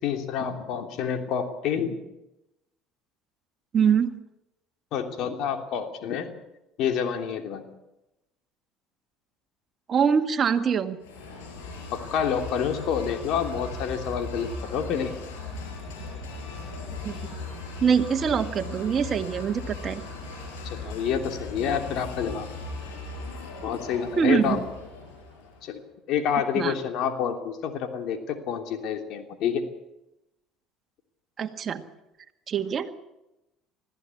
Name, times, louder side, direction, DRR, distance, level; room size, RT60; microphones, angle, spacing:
voice 1, 0.0-2.0 4.9-6.3 6.8-7.6 11.9-15.1 20.6-22.5 23.6-24.6 25.6-25.8 26.1-29.6, left 8 dB, 65° left, 5 dB, 3.1 m, -28 dB
voice 2, 3.7-4.1 9.9-11.0 17.0-17.2 17.8-20.0 24.2-24.6 26.6-26.7 31.4-31.8 32.5-32.9, right 7 dB, 40° right, 6 dB, 1.9 m, -24 dB
sound 1, 11.0-25.7, left 3 dB, 90° left, 6.7 m, -38 dB
20.5 x 15.0 x 8.6 m, 0.92 s
supercardioid pair, 80°, 0 cm